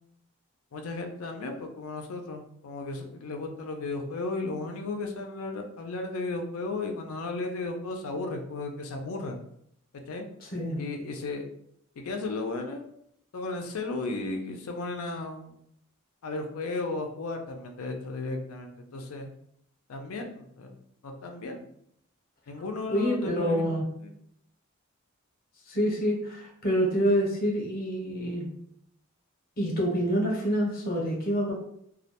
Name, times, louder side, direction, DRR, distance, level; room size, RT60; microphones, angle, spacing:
voice 1, 0.7-9.4 10.1-10.3 10.8-11.4 12.0-12.9 13.3-15.6 16.2-19.3 19.9-21.7 22.5-23.7 24.0-24.1, left 3 dB, 80° left, 4 dB, 0.4 m, -35 dB
voice 2, 10.5-10.8 22.9-23.8 25.7-28.5 29.6-31.5, equal, 40° left, -2 dB, 0.7 m, -27 dB
2.3 x 2.1 x 2.8 m, 0.71 s
head